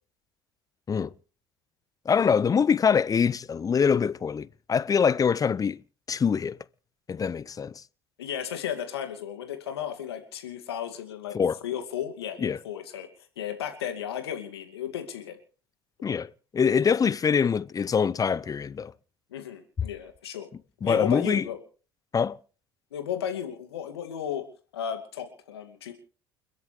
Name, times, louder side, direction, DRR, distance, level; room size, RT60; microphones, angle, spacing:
voice 1, 2.1-5.8 6.1-6.6 7.1-7.7 11.3-11.6 12.4-12.6 16.0-18.9 20.8-21.5 22.1-22.4, left 6 dB, 25° left, 0.7 m, -24 dB
voice 2, 8.2-11.4 11.6-13.1 13.4-15.4 19.3-20.5 20.8-21.6 22.9-24.4 24.7-25.9, left 9 dB, 80° left, 2.5 m, -34 dB
30.0 x 11.0 x 3.4 m
hypercardioid pair, 65°, 13 cm